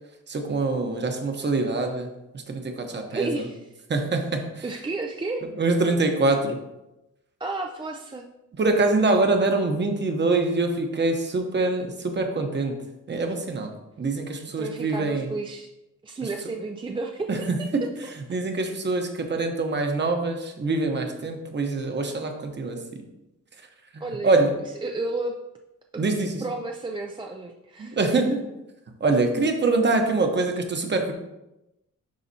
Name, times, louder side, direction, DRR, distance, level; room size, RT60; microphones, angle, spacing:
voice 1, 0.3-3.5 3.9-4.7 5.5-6.6 8.5-12.8 13.1-15.3 16.2-16.3 17.3-22.8 23.6-23.7 23.9-24.5 26.0-26.4 27.8-28.4 29.0-31.1, right 3 dB, 35° right, 4 dB, 1.0 m, -25 dB
voice 2, 3.1-3.6 4.6-5.4 7.4-8.3 14.6-15.7 16.0-17.3 17.8-17.9 24.0-24.4 24.8-25.4 25.9-26.0 26.4-28.0, right 3 dB, 15° right, 2 dB, 0.4 m, -32 dB
11.5 x 4.1 x 2.8 m, 0.94 s
wide cardioid pair, 130°, 31 cm